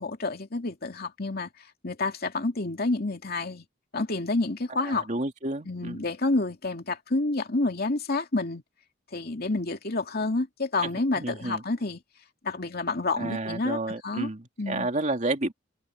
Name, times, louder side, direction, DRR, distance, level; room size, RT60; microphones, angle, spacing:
voice 1, 0.0-1.5 1.8-3.7 3.9-5.1 5.7-8.6 9.1-12.0 12.4-13.8 14.0-14.3 14.6-14.9, left 2 dB, 50° left, 2.6 m, -29 dB
voice 2, 4.8-6.1 11.2-11.6 13.2-15.5, right 2 dB, 40° right, 2.5 m, -31 dB
head